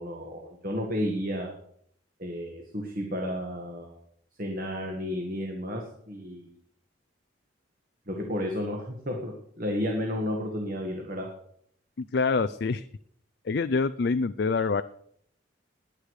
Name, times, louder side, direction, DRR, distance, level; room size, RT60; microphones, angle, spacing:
voice 1, 0.0-1.5 2.2-4.0 4.4-6.5 8.1-11.3, equal, 45° right, 1 dB, 1.9 m, -32 dB
voice 2, 12.0-12.9 13.4-14.8, left 4 dB, 55° left, 12 dB, 0.4 m, -26 dB
20.5 x 8.3 x 4.9 m, 0.67 s
head